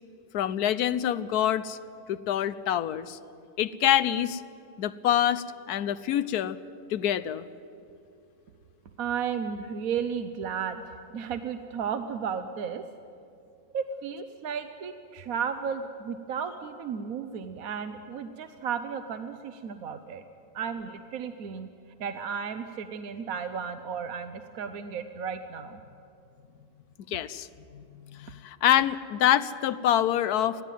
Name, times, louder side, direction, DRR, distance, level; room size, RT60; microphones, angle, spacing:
voice 1, 0.3-1.8 2.1-3.2 3.6-4.4 4.8-6.6 6.9-7.4 27.1-27.5 27.7-27.8 28.1-30.6, left 11 dB, 85° left, 15 dB, 1.2 m, -26 dB
voice 2, 9.0-12.8 13.7-20.2 20.5-21.7 22.0-25.8, right 7 dB, 70° right, 8 dB, 1.2 m, -34 dB
22.5 x 15.5 x 9.1 m, 2.5 s
omnidirectional pair, 1.6 m